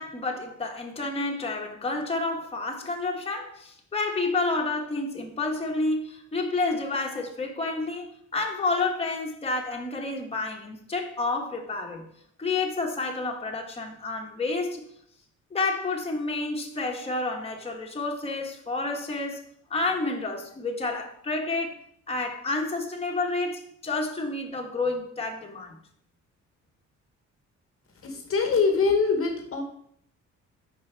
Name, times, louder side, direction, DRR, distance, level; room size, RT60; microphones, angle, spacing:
voice 1, 0.0-12.1 12.4-14.8 15.5-19.4 19.7-21.8 22.1-25.7, left 3 dB, 20° left, 0 dB, 1.2 m, -29 dB
voice 2, 28.0-29.6, left 4 dB, 45° left, 4 dB, 1.1 m, -23 dB
5.3 x 4.7 x 4.4 m, 0.66 s
cardioid pair, 90°, 30 cm